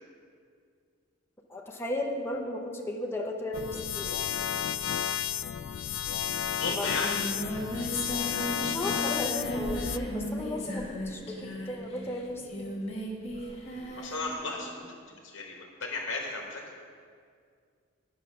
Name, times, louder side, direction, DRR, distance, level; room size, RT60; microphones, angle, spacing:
voice 1, 1.5-4.2 6.7-6.9 8.6-12.7, left 1 dB, 10° left, 0 dB, 0.7 m, -35 dB
sound 1, 3.5-10.0, left 10 dB, 75° left, 0.3 m, -32 dB
Singing, 6.3-6.4 6.6-14.3, equal, 30° left, 1.3 m, -36 dB
voice 2, 6.5-7.2 14.0-16.6, left 3 dB, 60° left, 0 dB, 1.1 m, -35 dB
9.0 x 5.9 x 6.0 m, 2.2 s
head